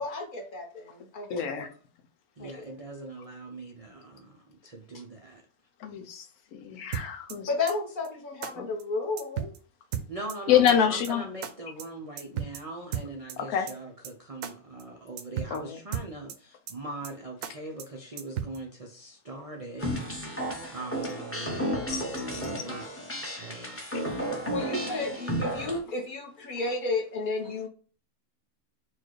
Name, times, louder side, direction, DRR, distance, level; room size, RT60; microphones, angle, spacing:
voice 1, 0.0-1.6 2.4-2.6 7.5-9.5 24.5-27.7, left 3 dB, 40° left, 0 dB, 1.0 m, -32 dB
voice 2, 1.3-1.7 5.8-6.3 6.5-7.5 8.6-8.7 10.5-11.2 13.4-13.7 15.5-15.8 21.9-22.0 22.3-22.4, left 9 dB, 80° left, 7 dB, 1.1 m, -26 dB
voice 3, 2.4-5.4 10.1-19.9 20.7-21.7 22.1-23.8, right 2 dB, 50° right, 1 dB, 0.4 m, -41 dB
sound 1, 6.9-7.4 7.7-7.8 8.0-8.1 8.4-8.5 8.8-8.9 9.2-9.6 9.9-10.4 10.7-10.8 11.0-11.1 11.4-11.5 11.8-11.9 12.2-12.6 12.9-13.4 13.7-13.8 14.0-14.1 14.4-14.5 14.8-14.9 15.2-15.6 15.9-16.4 16.7-16.8 17.0-17.1 17.4-17.5 17.8-17.9 18.2-18.6, right 9 dB, 70° right, 0.9 m, -34 dB
sound 2, 19.8-25.8, equal, 10° left, 0.7 m, -33 dB
4.4 x 2.3 x 4.6 m, 0.40 s
omnidirectional pair, 1.6 m